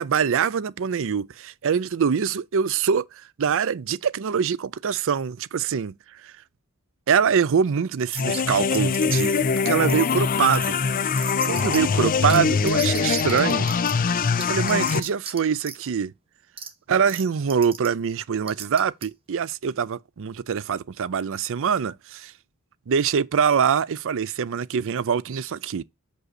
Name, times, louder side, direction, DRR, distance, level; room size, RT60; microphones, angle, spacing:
voice 1, 0.0-5.9 6.2-6.3 7.1-9.3 9.7-10.8 11.0-13.7 14.4-16.1 16.9-22.3 22.9-25.8, right 7 dB, 60° right, 0.5 m, -24 dB
sound 1, 8.1-8.4 8.7-9.4 9.9-10.1 10.5-10.7 11.2-11.8 12.3-12.4 12.7-13.9 14.4-15.4 15.6-15.8 16.6-16.7 17.1-17.2 17.5-17.9 18.5-19.0, right 6 dB, 25° right, 1.1 m, -35 dB
sound 2, 8.2-15.0, left 5 dB, 40° left, 0.5 m, -23 dB
6.3 x 5.4 x 4.1 m
head